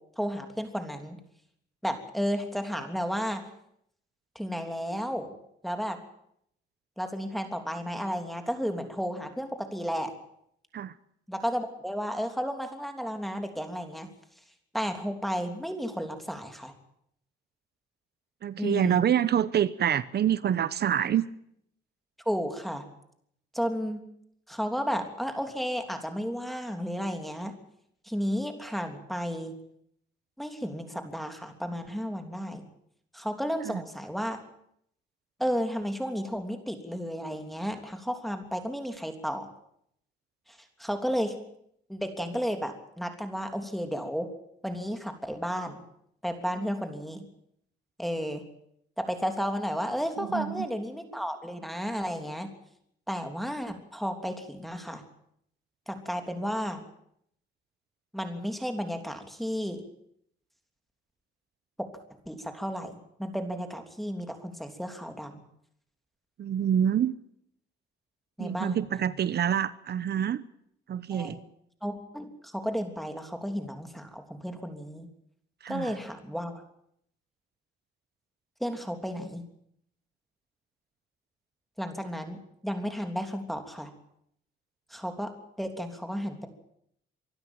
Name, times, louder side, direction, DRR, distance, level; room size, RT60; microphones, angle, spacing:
voice 1, 0.2-1.2 1.8-3.4 4.3-5.3 5.6-6.0 7.0-10.1 11.3-14.1 14.7-16.7 18.6-19.1 22.2-22.8 23.5-24.0 24.5-27.5 28.0-29.5 30.4-32.6 33.1-34.4 35.4-39.5 40.5-41.4 41.9-44.3 44.6-45.8 46.2-47.2 48.0-48.4 49.0-52.5 53.1-55.0 55.9-56.8 58.1-59.8 61.8-61.9 62.3-65.4 68.4-69.1 71.1-71.4 71.8-75.1 75.7-76.6 78.6-79.4 81.8-82.4 82.6-83.9 84.9-85.3 85.6-86.5, equal, ahead, 5 dB, 3.2 m, -33 dB
voice 2, 18.4-21.3 50.2-50.7 66.4-67.1 68.4-70.4 70.9-71.4 75.6-75.9, right 9 dB, 55° right, 16 dB, 1.0 m, -26 dB
25.0 x 12.5 x 9.1 m, 0.71 s
cardioid pair, 90°, 20 cm